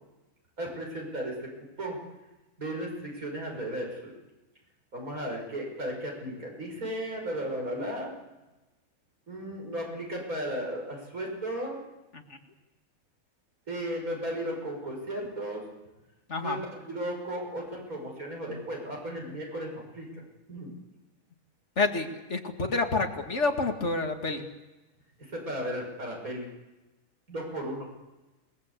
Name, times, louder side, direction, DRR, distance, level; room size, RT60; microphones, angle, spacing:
voice 1, 0.6-2.0 2.6-4.1 4.9-8.1 9.3-11.8 13.7-15.6 16.4-20.2 20.5-20.7 25.2-26.5 27.3-27.9, right 1 dB, 85° right, 0 dB, 6.8 m, -35 dB
voice 2, 21.8-24.5, left 3 dB, 55° left, 4 dB, 2.5 m, -28 dB
28.0 x 19.0 x 8.4 m, 1.1 s
omnidirectional pair, 1.5 m